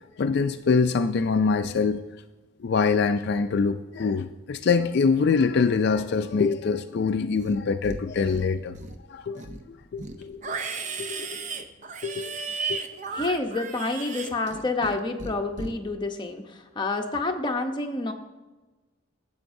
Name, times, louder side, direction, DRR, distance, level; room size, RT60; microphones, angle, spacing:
voice 1, 0.2-2.0 2.6-8.7 9.1-9.4 9.9-10.5 11.0-11.4 12.0-12.4, left 5 dB, 55° left, 9 dB, 0.3 m, -24 dB
Livestock farm animals working animals, 7.4-8.0 8.3-9.0 9.3-14.9 15.2-15.7, right 4 dB, 40° right, 0.6 m, -35 dB
voice 2, 13.1-18.1, left 2 dB, 25° left, 3 dB, 0.8 m, -28 dB
12.0 x 7.9 x 2.6 m, 1.2 s
head